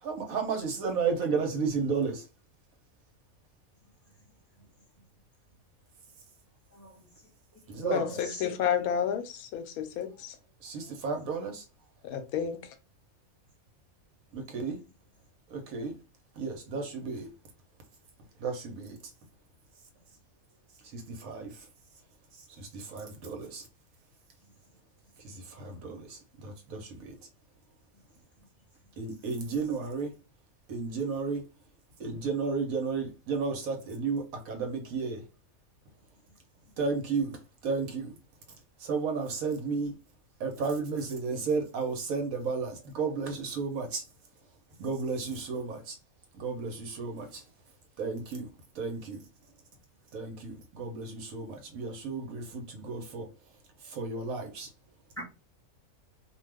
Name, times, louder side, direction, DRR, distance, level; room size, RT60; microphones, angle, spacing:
voice 1, 0.0-2.3 7.7-8.0 10.6-11.6 14.3-14.8 15.5-16.0 16.4-17.3 18.4-19.0 20.9-21.6 22.6-23.7 25.2-27.2 29.0-30.1 30.7-31.4 32.0-35.2 36.8-38.1 38.8-40.0 40.4-44.0 44.8-46.0 46.3-47.4 48.0-48.5 48.7-49.3 50.1-53.3 53.8-54.7, right 4 dB, 75° right, 1.2 m, -33 dB
voice 2, 6.7-7.3 7.7-8.5 24.4-24.5 25.3-25.4 28.4-28.5 36.3-36.4 36.7-36.8 55.2-55.3, right 2 dB, 10° left, 0.9 m, -37 dB
voice 3, 7.9-10.4 12.0-12.7, left 8 dB, 85° left, 1.1 m, -31 dB
2.6 x 2.3 x 3.3 m
omnidirectional pair, 1.5 m